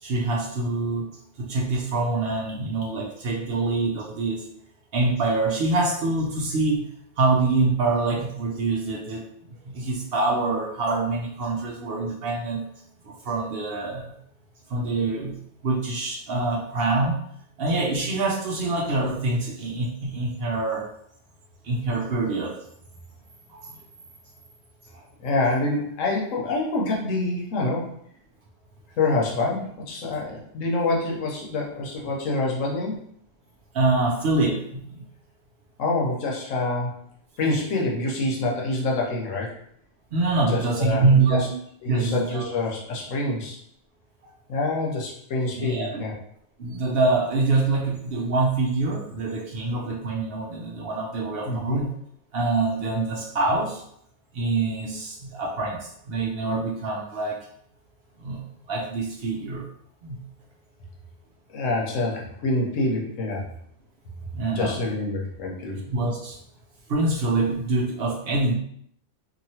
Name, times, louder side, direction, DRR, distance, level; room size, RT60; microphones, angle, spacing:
voice 1, 0.0-1.1 1.4-4.5 4.9-6.9 7.2-12.7 13.1-14.1 14.7-15.3 15.6-17.2 17.6-20.9 21.6-22.6 23.5-23.8 24.9-25.0 33.7-34.9 40.1-41.5 41.9-42.5 45.5-46.0 46.6-51.9 52.3-53.8 54.3-57.5 58.2-59.6 60.0-60.2 64.3-64.9 65.9-66.4 66.9-68.5, right 3 dB, 60° right, -1 dB, 0.7 m, -25 dB
voice 2, 25.2-28.0 29.0-33.0 35.8-37.0 37.4-39.5 40.5-41.5 41.8-43.6 44.5-46.1 51.5-51.8 61.5-63.5 64.5-65.8, left 2 dB, 85° left, -2 dB, 1.2 m, -26 dB
2.9 x 2.6 x 2.8 m, 0.68 s
omnidirectional pair, 1.3 m